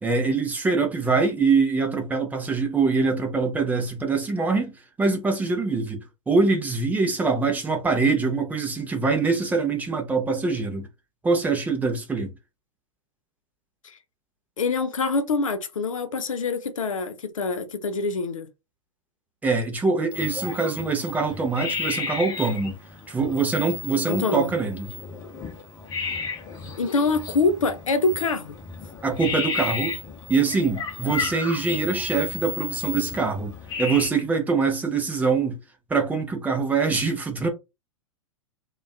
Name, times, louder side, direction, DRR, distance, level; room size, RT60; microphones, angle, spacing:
voice 1, 0.0-4.7 5.0-10.9 11.2-12.3 19.4-22.7 23.1-24.9 29.0-29.9 30.3-33.5 33.8-35.6 35.9-37.5, right 4 dB, 10° right, 0.5 m, -24 dB
voice 2, 14.6-18.5 24.0-24.5 26.8-28.6, left 3 dB, 70° left, 0.6 m, -25 dB
sound 1, 20.1-34.1, left 4 dB, 25° left, 0.8 m, -33 dB
2.4 x 2.3 x 2.3 m
figure-of-eight pair, 100°, 17 cm